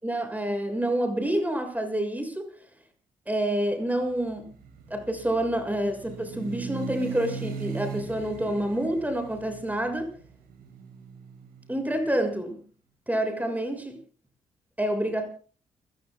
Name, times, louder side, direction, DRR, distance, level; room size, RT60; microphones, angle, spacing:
voice 1, 0.0-2.5 3.3-4.5 4.9-10.1 11.7-12.6 13.1-14.0 14.8-15.3, right 1 dB, 10° right, 6 dB, 6.9 m, -28 dB
sound 1, 4.1-12.1, right 6 dB, 75° right, 5.5 m, -40 dB
30.0 x 16.5 x 2.4 m, 0.40 s
hypercardioid pair, 45°, 16 cm